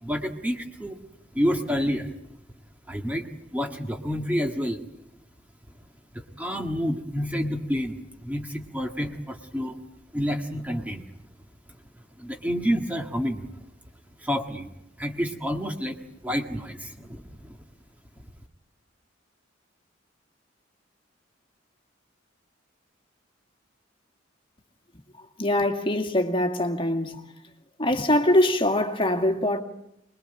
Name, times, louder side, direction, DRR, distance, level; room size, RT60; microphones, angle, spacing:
voice 1, 0.0-1.0 1.3-2.1 2.9-4.8 6.1-9.8 10.1-11.0 12.2-13.4 14.2-14.7 15.0-17.6, equal, 10° right, 1.7 m, -29 dB
voice 2, 25.4-27.2 27.8-29.6, left 1 dB, 25° left, 2.2 m, -23 dB
26.0 x 21.0 x 9.0 m
head